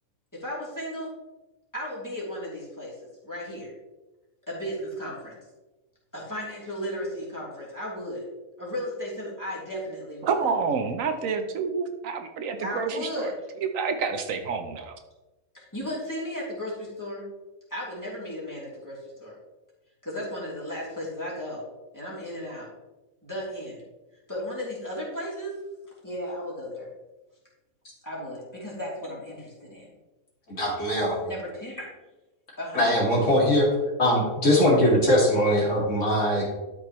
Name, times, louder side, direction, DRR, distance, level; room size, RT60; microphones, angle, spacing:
voice 1, 0.4-1.1 1.7-3.0 3.2-3.7 4.5-5.4 6.1-8.2 8.6-10.4 12.6-13.3 15.5-17.2 17.7-19.4 20.0-21.6 21.9-22.7 23.2-23.8 24.3-25.5 26.0-26.9 28.0-29.9 31.2-31.9 32.6-32.9, equal, 15° left, -6 dB, 3.0 m, -35 dB
voice 2, 10.2-13.3 13.6-14.9, right 5 dB, 75° right, 7 dB, 1.1 m, -28 dB
voice 3, 30.5-31.2 32.7-33.7 34.0-36.5, equal, 60° left, -4 dB, 2.7 m, -21 dB
12.5 x 5.2 x 3.1 m, 1.1 s
omnidirectional pair, 1.4 m